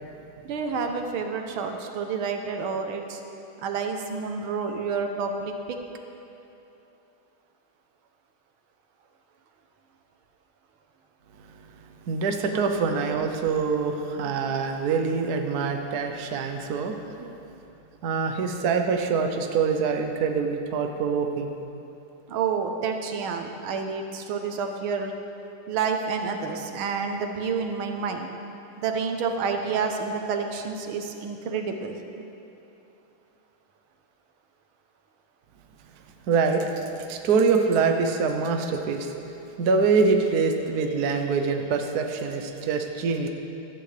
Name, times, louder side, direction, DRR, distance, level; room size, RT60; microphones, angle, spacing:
voice 1, 0.5-3.2 3.6-5.6 12.5-12.6 22.3-25.1 25.7-28.3 28.8-32.3, right 5 dB, 80° right, 5 dB, 1.7 m, -29 dB
voice 2, 12.1-17.5 18.0-21.5 36.3-39.1 39.6-43.3, right 5 dB, 60° right, 4 dB, 1.1 m, -25 dB
14.5 x 13.5 x 3.3 m, 2.9 s
omnidirectional pair, 2.3 m